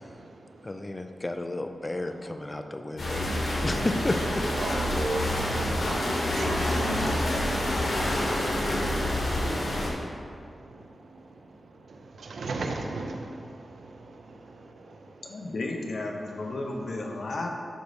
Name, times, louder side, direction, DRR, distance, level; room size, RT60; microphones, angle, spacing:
voice 1, 0.6-3.3 3.6-4.5, left 2 dB, 20° left, 7 dB, 0.4 m, -32 dB
sound 1, 3.0-9.9, left 1 dB, 90° left, 1.7 m, -27 dB
voice 2, 4.6-5.4 6.1-8.0 9.3-9.5 11.9-13.9 14.3-14.5, right 3 dB, 85° right, 3 dB, 0.7 m, -36 dB
voice 3, 15.2-17.5, left 2 dB, 60° left, 1 dB, 0.9 m, -33 dB
11.0 x 4.0 x 3.5 m, 2.3 s
wide cardioid pair, 140°, 0 cm